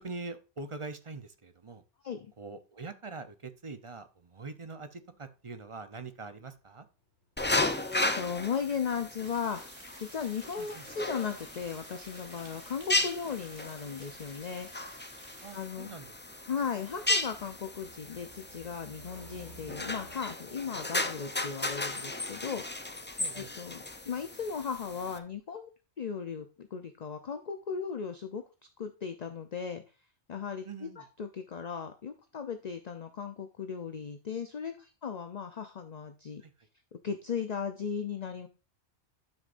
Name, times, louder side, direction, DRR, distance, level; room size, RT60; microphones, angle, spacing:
voice 1, 0.0-1.8 2.4-6.9 10.6-10.9 15.4-16.1 16.3-16.5 23.2-23.5 30.6-31.1 36.4-36.7, right 3 dB, 30° right, 10 dB, 0.7 m, -43 dB
sound 1, 4.2-20.3, right 1 dB, 85° right, 5.0 m, -59 dB
sound 2, 7.4-25.2, left 2 dB, 15° left, 0.4 m, -35 dB
voice 2, 7.8-9.6 10.0-14.7 15.5-15.9 16.5-22.6 23.3-23.8 24.1-25.7 26.0-28.4 28.8-29.8 30.3-30.7 31.0-36.4 36.9-38.5, left 6 dB, 45° left, 7 dB, 0.7 m, -36 dB
sound 3, 9.2-15.7, right 2 dB, 50° right, 2.2 m, -54 dB
11.5 x 6.4 x 2.6 m, 0.32 s
omnidirectional pair, 1.2 m